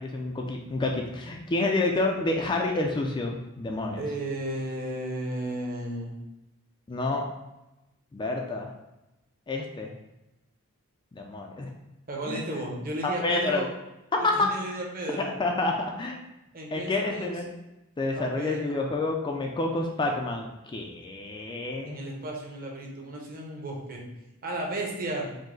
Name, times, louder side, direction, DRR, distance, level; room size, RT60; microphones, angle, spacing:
voice 1, 0.0-4.0 6.9-7.2 8.1-8.7 9.5-9.9 11.1-11.7 12.3-12.4 13.0-13.7 14.1-14.5 15.2-16.2 16.7-17.4 18.0-22.0, left 2 dB, 20° left, 1 dB, 0.3 m, -28 dB
voice 2, 4.0-6.1 12.1-13.7 14.2-15.3 16.5-17.4 18.1-18.8 21.8-24.0 24.4-25.3, right 1 dB, 40° right, -1 dB, 0.9 m, -34 dB
5.1 x 2.0 x 3.8 m, 0.96 s
head